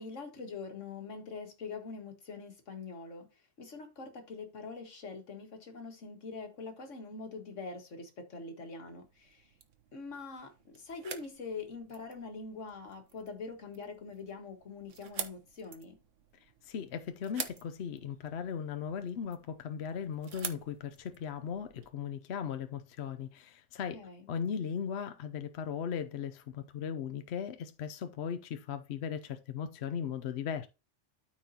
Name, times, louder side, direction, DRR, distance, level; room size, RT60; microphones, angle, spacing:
voice 1, 0.0-3.3 3.6-9.5 9.9-16.0 23.9-24.3, left 4 dB, 80° left, 1.9 m, -44 dB
sound 1, 9.0-21.9, right 7 dB, 80° right, 1.3 m, -48 dB
voice 2, 16.6-24.0 24.3-30.7, left 7 dB, 65° left, 0.9 m, -37 dB
13.0 x 4.6 x 2.8 m
omnidirectional pair, 1.3 m